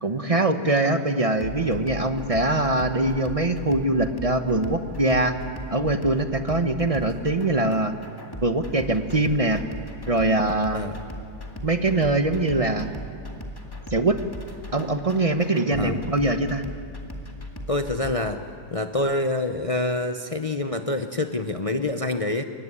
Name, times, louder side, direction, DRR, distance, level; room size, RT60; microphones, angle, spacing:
voice 1, 0.0-5.3 5.7-7.9 8.4-9.6 10.1-10.8 11.6-12.9 13.9-14.2 14.7-16.7, right 2 dB, 30° right, 8 dB, 0.8 m, -23 dB
sound 1, 1.4-18.1, left 1 dB, 15° left, 2.0 m, -38 dB
voice 2, 17.7-18.4 18.7-22.4, left 2 dB, 45° left, 7 dB, 0.4 m, -26 dB
23.5 x 18.5 x 9.8 m, 2.5 s
omnidirectional pair, 1.9 m